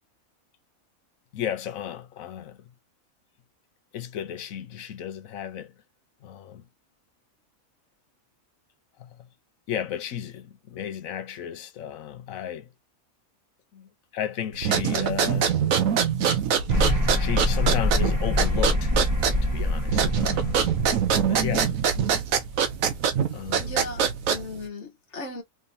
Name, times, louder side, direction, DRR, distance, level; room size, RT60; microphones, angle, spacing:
voice 1, 1.3-2.7 3.9-5.7 6.2-6.6 9.0-9.3 9.7-12.7 13.7-15.5 17.2-18.9 19.4-20.7 21.3-21.8 23.3-23.9, left 9 dB, 80° left, 1.1 m, -33 dB
sound 1, 14.6-24.7, right 7 dB, 80° right, 1.2 m, -24 dB
sound 2, 16.7-23.2, left 1 dB, 15° right, 1.4 m, -26 dB
voice 2, 23.6-25.4, left 2 dB, 55° left, 1.5 m, -37 dB
3.5 x 3.3 x 2.7 m
omnidirectional pair, 1.4 m